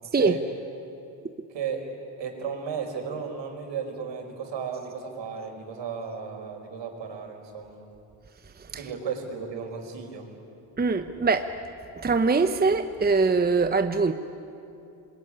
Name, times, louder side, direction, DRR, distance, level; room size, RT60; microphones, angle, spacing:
voice 1, 0.0-0.4 1.5-1.9 2.2-7.9 8.7-10.3, right 6 dB, 65° right, 3 dB, 5.1 m, -34 dB
voice 2, 8.6-8.9 10.8-11.5 12.0-14.1, right 4 dB, 20° right, 8 dB, 1.0 m, -23 dB
26.5 x 21.0 x 10.0 m, 2.8 s
supercardioid pair, 75°, 47 cm